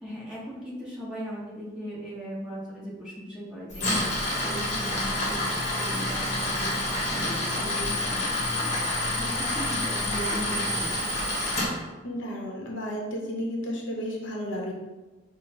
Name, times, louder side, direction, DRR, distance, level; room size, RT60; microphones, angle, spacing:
voice 1, 0.0-5.4 5.7-11.2, equal, 5° right, -8 dB, 1.0 m, -38 dB
Tools, 3.7-11.7, left 1 dB, 35° left, 0.9 m, -28 dB
voice 2, 12.0-14.7, equal, 80° left, -1 dB, 0.7 m, -32 dB
5.5 x 2.0 x 3.0 m, 1.2 s
head